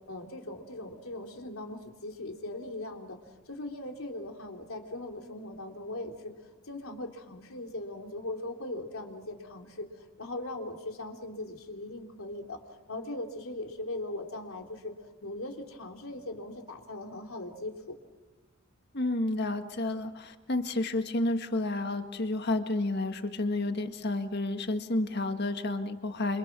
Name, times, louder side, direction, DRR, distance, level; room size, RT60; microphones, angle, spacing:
voice 1, 0.1-3.2 3.4-6.3 6.7-9.9 10.2-14.9 15.2-17.9, left 2 dB, 90° left, 3 dB, 3.4 m, -39 dB
voice 2, 18.9-26.4, left 2 dB, 50° left, 7 dB, 1.8 m, -30 dB
29.0 x 27.5 x 6.2 m, 1.1 s
head